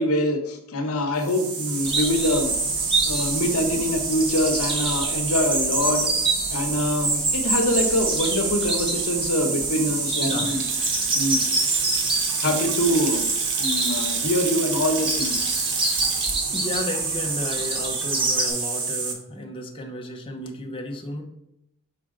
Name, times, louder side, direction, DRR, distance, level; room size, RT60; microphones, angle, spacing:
voice 1, 0.0-2.5 3.0-10.6 11.2-11.4 12.4-13.2 13.6-15.4, left 1 dB, 80° left, 5 dB, 1.0 m, -24 dB
sound 1, 1.2-19.1, right 5 dB, 85° right, 1.1 m, -28 dB
Chirp tweet, 1.9-18.5, right 2 dB, 25° right, 1.3 m, -28 dB
voice 2, 10.2-10.5 16.5-21.2, left 1 dB, 25° left, 0 dB, 0.7 m, -33 dB
Water tap faucet / Sink (filling or washing) / Splash splatter, 10.3-18.4, right 5 dB, 55° right, 1.1 m, -32 dB
5.9 x 4.8 x 3.7 m, 0.83 s
head